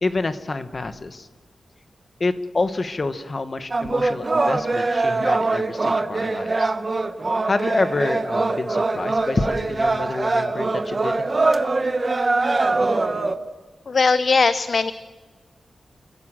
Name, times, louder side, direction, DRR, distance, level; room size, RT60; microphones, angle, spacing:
voice 1, 0.0-1.3 2.2-6.7 7.4-11.3, left 3 dB, 40° left, 10 dB, 1.3 m, -27 dB
sound 1, 3.7-13.3, right 3 dB, 35° right, 1.2 m, -22 dB
voice 2, 13.9-14.9, left 4 dB, 55° left, 12 dB, 0.6 m, -19 dB
30.0 x 16.5 x 7.7 m, 1.4 s
wide cardioid pair, 115°, 0 cm